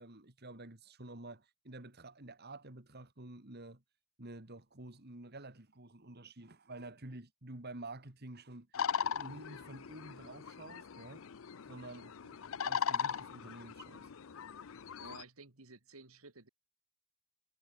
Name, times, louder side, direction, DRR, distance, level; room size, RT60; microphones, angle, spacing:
voice 1, 0.0-3.8 4.2-8.7 9.1-11.3 11.7-12.1 12.6-14.1, right 2 dB, 50° right, 2.6 m, -49 dB
sound 1, 8.7-15.2, left 7 dB, 65° left, 0.6 m, -39 dB
voice 2, 15.0-16.5, right 3 dB, 85° right, 2.8 m, -54 dB
head